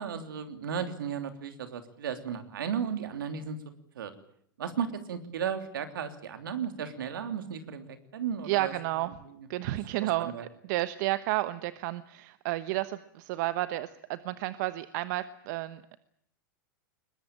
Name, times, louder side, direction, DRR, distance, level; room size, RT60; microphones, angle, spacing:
voice 1, 0.0-3.6 3.9-4.1 4.6-8.7 9.3-9.5 10.0-10.5, right 7 dB, 80° right, 7 dB, 3.2 m, -35 dB
voice 2, 8.5-9.1 9.5-10.3 10.7-16.0, right 16 dB, 60° right, 13 dB, 1.1 m, -31 dB
22.0 x 21.0 x 8.9 m, 0.69 s
hypercardioid pair, 105°, 11 cm